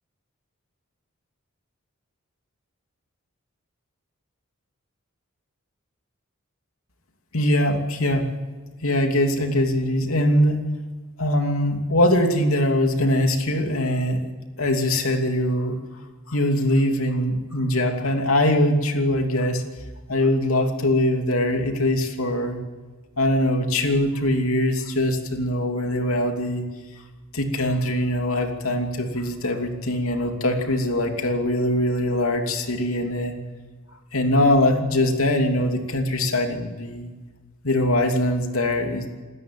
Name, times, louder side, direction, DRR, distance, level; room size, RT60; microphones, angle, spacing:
voice 1, 7.3-8.3 8.8-10.6 11.2-14.2 14.6-15.8 16.3-19.6 20.1-22.6 23.2-26.6 27.3-33.3 34.1-37.1 37.6-39.1, left 1 dB, 75° left, 4 dB, 2.9 m, -22 dB
27.0 x 13.5 x 9.0 m, 1.4 s
head